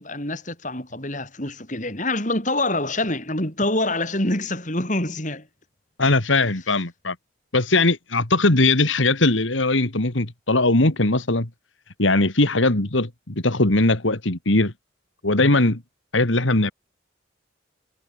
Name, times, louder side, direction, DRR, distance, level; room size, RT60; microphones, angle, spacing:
voice 1, 0.0-5.5, left 2 dB, 40° left, 6.9 m, -26 dB
voice 2, 6.0-7.2 7.5-11.5 12.0-14.7 15.2-15.8 16.1-16.7, left 2 dB, 80° left, 2.5 m, -20 dB
head